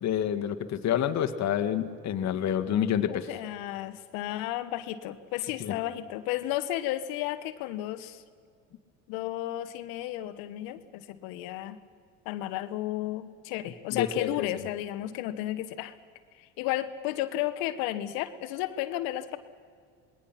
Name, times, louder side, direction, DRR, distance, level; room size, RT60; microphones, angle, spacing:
voice 1, 0.0-3.3 5.6-5.7 13.9-14.5, left 9 dB, 45° left, 8 dB, 1.7 m, -28 dB
voice 2, 3.1-8.2 9.1-11.8 12.2-15.9 16.4-19.4, left 14 dB, 60° left, 12 dB, 1.3 m, -33 dB
27.5 x 20.5 x 5.9 m, 2.1 s
hypercardioid pair, 70°, 39 cm